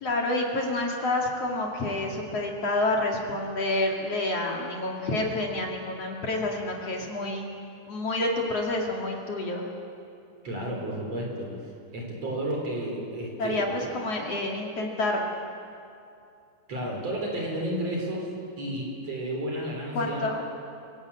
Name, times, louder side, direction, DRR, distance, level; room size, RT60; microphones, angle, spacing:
voice 1, 0.0-7.4 7.9-9.7 13.4-15.3 19.9-20.4, left 2 dB, 45° left, -1 dB, 2.6 m, -28 dB
voice 2, 10.4-11.6 11.9-13.6 16.7-20.2, right 1 dB, 40° right, 0 dB, 4.5 m, -32 dB
26.5 x 17.0 x 8.4 m, 2.6 s
omnidirectional pair, 5.1 m